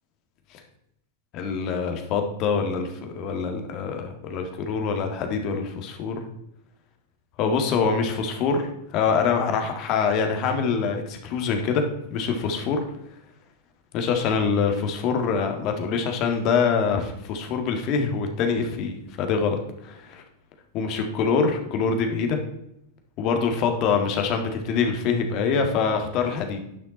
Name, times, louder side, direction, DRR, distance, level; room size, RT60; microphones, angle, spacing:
voice 1, 1.3-6.2 7.4-11.8 12.1-12.8 13.9-20.2 20.7-22.4 23.2-26.6, left 5 dB, 45° left, 5 dB, 1.8 m, -25 dB
9.8 x 6.0 x 4.2 m, 0.80 s
hypercardioid pair, 100°, 0 cm